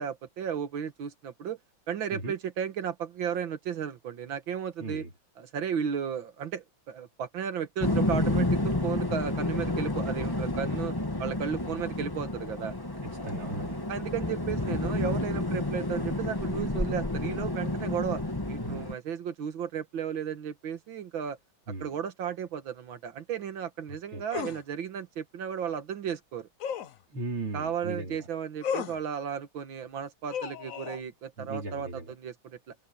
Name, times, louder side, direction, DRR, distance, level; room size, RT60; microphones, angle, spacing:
voice 1, 0.0-1.6 1.9-5.0 5.4-10.9 11.2-12.7 13.9-18.2 18.5-21.4 21.8-26.5 27.5-32.7, right 8 dB, 70° right, 2.2 m, -34 dB
voice 2, 4.8-5.1 13.0-13.8 18.6-18.9 21.7-21.9 24.1-24.2 27.1-28.3 31.4-32.1, right 2 dB, 90° right, 5.8 m, -37 dB
sound 1, 7.8-18.9, left 2 dB, 10° left, 1.7 m, -30 dB
sound 2, 24.3-24.6 26.6-27.0 28.6-29.0 30.3-31.0, left 8 dB, 55° left, 0.9 m, -34 dB
omnidirectional pair, 2.3 m